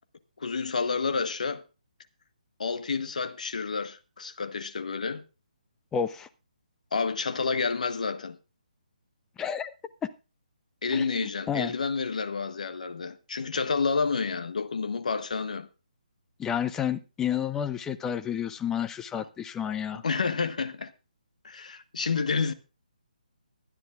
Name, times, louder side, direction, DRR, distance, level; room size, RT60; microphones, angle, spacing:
voice 1, 0.4-1.6 2.6-5.2 6.9-8.4 10.8-15.7 20.0-20.9 21.4-22.5, left 5 dB, 60° left, 1.3 m, -29 dB
voice 2, 5.9-6.3 9.4-9.7 10.0-10.1 10.9-11.1 11.5-11.7 16.4-20.0, left 8 dB, 10° left, 0.6 m, -30 dB
24.0 x 9.8 x 2.4 m
figure-of-eight pair, 145°, 4 cm